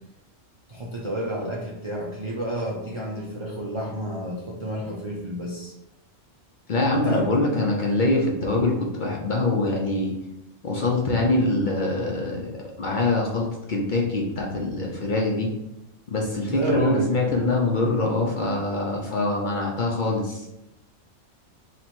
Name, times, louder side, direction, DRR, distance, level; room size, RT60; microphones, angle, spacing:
voice 1, 0.7-5.7 6.9-7.3 16.5-17.1, right 1 dB, 50° right, -3 dB, 0.3 m, -30 dB
voice 2, 6.7-10.1 10.6-15.5 16.1-20.5, left 2 dB, 50° left, -2 dB, 0.6 m, -24 dB
2.9 x 2.9 x 4.3 m, 0.90 s
omnidirectional pair, 1.3 m